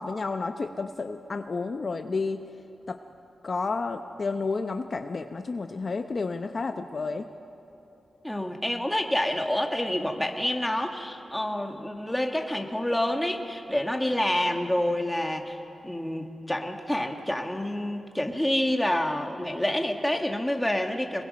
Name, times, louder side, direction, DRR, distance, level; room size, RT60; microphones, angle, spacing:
voice 1, 0.0-2.4 2.9-3.0 3.4-7.3, left 4 dB, 50° left, 7 dB, 0.8 m, -31 dB
voice 2, 8.2-15.6 15.8-21.2, left 1 dB, 10° left, 3 dB, 1.9 m, -28 dB
26.0 x 21.5 x 5.3 m, 3.0 s
cardioid pair, 85°, 0 cm